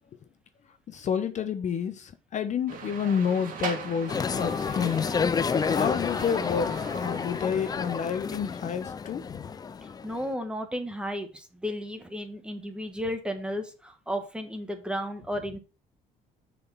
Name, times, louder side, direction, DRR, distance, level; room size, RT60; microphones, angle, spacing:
voice 1, 0.9-5.1 5.6-9.5, left 7 dB, 45° left, 0.7 m, -29 dB
sound 1, 2.7-8.0, right 5 dB, 55° right, 1.8 m, -40 dB
sound 2, 4.1-10.3, left 6 dB, 25° left, 0.4 m, -30 dB
voice 2, 9.8-15.6, equal, 5° right, 1.3 m, -34 dB
6.6 x 4.3 x 5.5 m
cardioid pair, 110°, 17 cm